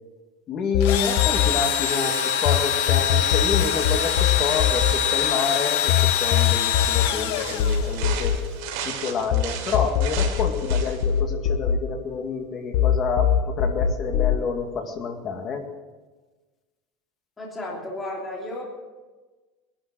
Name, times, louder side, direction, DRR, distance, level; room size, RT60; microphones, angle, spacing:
voice 1, 0.5-8.4 8.8-15.6, left 5 dB, 30° left, 4 dB, 2.0 m, -28 dB
sound 1, 0.7-2.6 2.9-9.4 9.7-12.4 12.7-14.4, left 9 dB, 55° left, 0.9 m, -22 dB
Engine / Drill, 0.8-8.1, left 9 dB, 70° left, 1.5 m, -24 dB
sound 2, 7.1-11.2, right 8 dB, 60° right, 3.1 m, -35 dB
voice 2, 17.4-18.6, left 1 dB, 10° left, -3 dB, 3.0 m, -33 dB
19.5 x 12.0 x 6.3 m, 1.3 s
supercardioid pair, 175°, 0 cm